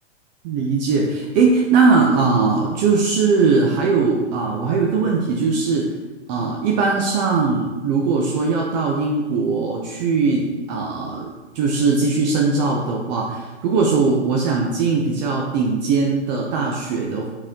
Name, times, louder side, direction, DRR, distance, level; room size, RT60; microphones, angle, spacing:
voice 1, 0.4-5.9 6.3-11.3 11.5-17.3, right 4 dB, 35° right, -1 dB, 0.8 m, -20 dB
7.5 x 4.3 x 3.7 m, 1.2 s
figure-of-eight pair, 110°, 36 cm